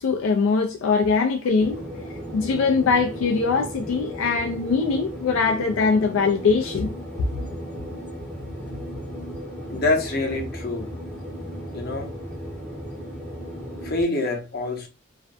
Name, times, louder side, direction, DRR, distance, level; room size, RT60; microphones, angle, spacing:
voice 1, 0.0-1.8 2.3-6.9, left 4 dB, 80° left, 0.4 m, -22 dB
sound 1, 1.6-14.0, equal, 5° left, 0.6 m, -35 dB
voice 2, 9.7-10.9 11.7-12.1 13.8-14.9, left 2 dB, 50° left, 0.8 m, -26 dB
2.4 x 2.2 x 2.4 m
head